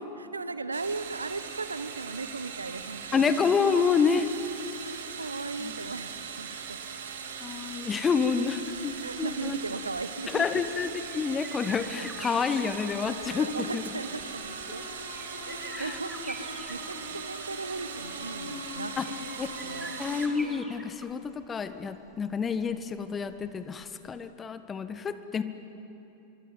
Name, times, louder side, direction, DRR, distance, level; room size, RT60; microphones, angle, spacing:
voice 1, 0.3-3.3 3.6-4.0 4.8-6.8 9.0-10.6 13.3-14.8 15.4-19.3 19.6-20.0, right 3 dB, 80° right, 13 dB, 1.0 m, -37 dB
sound 1, 0.7-20.3, right 6 dB, 60° right, 2.6 m, -40 dB
voice 2, 3.1-4.3 5.6-5.7 7.4-8.9 9.2-9.6 10.3-13.8 15.8-16.0 19.0-19.1 19.4-19.5 20.0-25.4, left 6 dB, 20° left, 11 dB, 1.3 m, -28 dB
sound 2, 7.8-24.3, right 2 dB, 5° right, 1.5 m, -48 dB
sound 3, 12.0-20.7, left 3 dB, 65° left, 5.0 m, -44 dB
25.5 x 22.5 x 9.1 m, 2.9 s
figure-of-eight pair, 90°, 0 cm